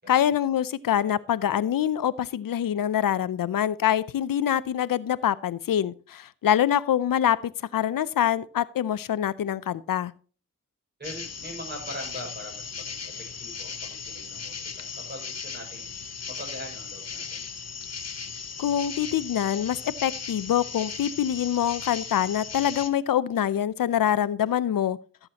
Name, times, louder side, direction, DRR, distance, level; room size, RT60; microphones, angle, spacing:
voice 1, 0.1-10.1 18.6-25.0, left 10 dB, 90° left, 17 dB, 0.5 m, -25 dB
sound 1, 11.0-22.9, left 6 dB, 50° left, 0.9 m, -37 dB
voice 2, 11.0-15.9 16.2-17.4, equal, 30° right, 0 dB, 5.8 m, -42 dB
15.0 x 7.9 x 2.9 m, 0.38 s
wide cardioid pair, 90°, 33 cm